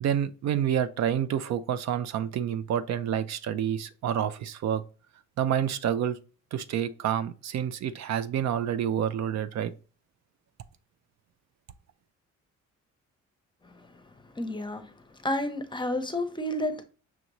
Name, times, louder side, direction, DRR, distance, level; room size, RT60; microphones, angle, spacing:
voice 1, 0.0-4.8 5.4-6.2 6.5-9.7, right 9 dB, 65° right, 0.4 m, -28 dB
voice 2, 14.4-14.9 15.2-16.8, left 1 dB, 15° left, 0.7 m, -31 dB
5.9 x 2.6 x 3.0 m
cardioid pair, 90°, 30 cm